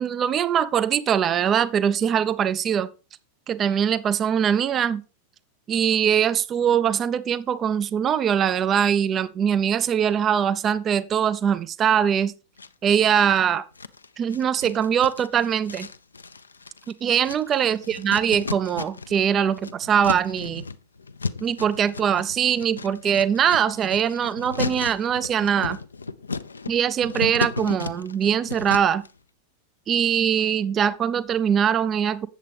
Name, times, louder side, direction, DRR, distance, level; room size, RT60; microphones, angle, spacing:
voice 1, 0.0-2.9 3.5-5.0 5.7-12.3 12.8-13.6 14.2-15.9 17.0-20.6 21.4-25.8 26.7-29.0 29.9-32.3, right 8 dB, 25° right, 0.4 m, -22 dB
sound 1, 12.6-13.4 13.8-19.2 19.5-29.1, left 4 dB, 75° left, 0.4 m, -34 dB
8.2 x 7.3 x 3.4 m
figure-of-eight pair, 90°, 0 cm